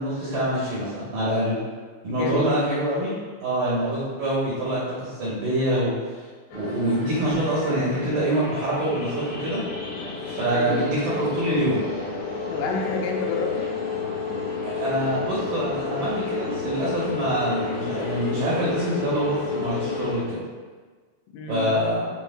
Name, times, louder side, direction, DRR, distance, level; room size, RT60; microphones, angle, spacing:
voice 1, 0.0-1.6 2.0-6.2 6.5-9.6 10.3-11.8 14.6-20.4 21.5-22.0, right 1 dB, 70° right, -9 dB, 2.1 m, -25 dB
voice 2, 2.1-2.8 10.5-10.9 12.5-13.7 21.3-21.8, left 3 dB, 90° left, 1 dB, 3.4 m, -29 dB
sound 1, 6.5-20.2, left 5 dB, 75° left, 4.4 m, -31 dB
11.0 x 4.5 x 2.2 m, 1.4 s
omnidirectional pair, 5.6 m